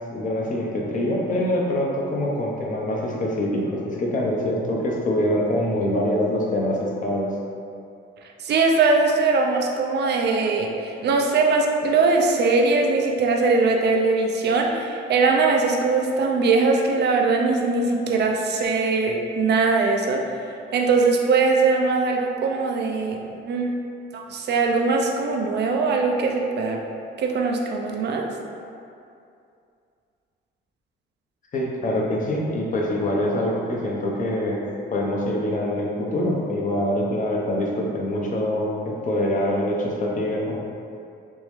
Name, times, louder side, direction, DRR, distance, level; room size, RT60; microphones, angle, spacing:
voice 1, 0.1-7.3 31.5-34.6 34.9-40.6, left 1 dB, 40° left, -2 dB, 0.7 m, -24 dB
voice 2, 8.4-20.3 20.7-23.2 23.4-23.7 24.1-26.8 27.2-28.3, right 4 dB, 60° right, 1 dB, 0.5 m, -21 dB
3.5 x 3.1 x 3.1 m, 2.5 s
cardioid pair, 90°, 20 cm